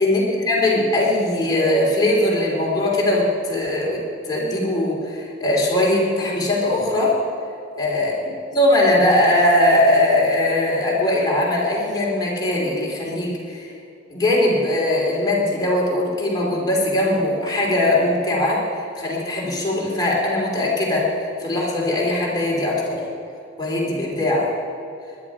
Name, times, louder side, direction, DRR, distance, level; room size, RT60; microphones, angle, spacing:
voice 1, 0.0-7.2 7.8-8.1 8.5-13.7 14.1-23.0 23.6-24.5, left 1 dB, 20° left, -4 dB, 3.0 m, -20 dB
20.5 x 11.0 x 4.9 m, 2.5 s
head